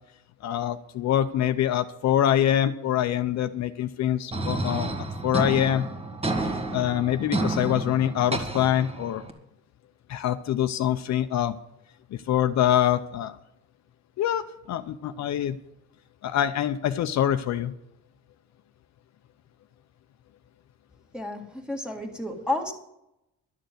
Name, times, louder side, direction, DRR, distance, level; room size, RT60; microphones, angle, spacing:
voice 1, 0.4-4.9 5.2-5.9 6.4-9.2 10.1-11.6 12.1-13.4 14.2-15.6 16.2-17.7, left 11 dB, 60° left, 9 dB, 0.6 m, -25 dB
sound 1, 4.3-9.3, right 2 dB, 20° right, 1.6 m, -30 dB
voice 2, 21.1-22.7, left 2 dB, 5° right, 3 dB, 1.9 m, -31 dB
11.5 x 6.8 x 9.3 m, 0.85 s
cardioid pair, 130°, 32 cm